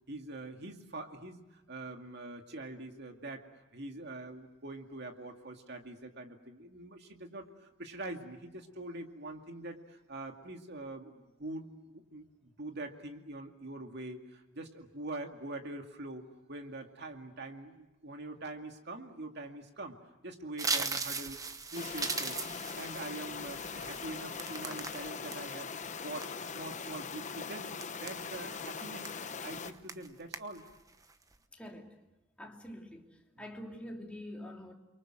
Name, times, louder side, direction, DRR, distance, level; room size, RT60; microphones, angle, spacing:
voice 1, 0.1-3.5 3.7-20.0 20.2-21.4 21.7-22.4 22.7-27.7 28.0-30.6 32.4-32.5 33.3-33.4, right 2 dB, 60° right, 2.4 m, -44 dB
sound 1, 20.6-25.4 25.8-26.7 27.2-27.4 27.8-28.6 29.0-29.3 29.6-30.1 30.3-30.7 31.1-31.3, right 4 dB, 20° right, 1.0 m, -38 dB
sound 2, 21.7-29.7, left 5 dB, 40° left, 1.0 m, -41 dB
voice 2, 31.5-31.9 32.4-33.1 33.4-34.7, left 1 dB, 5° left, 2.8 m, -45 dB
30.0 x 23.5 x 7.8 m
head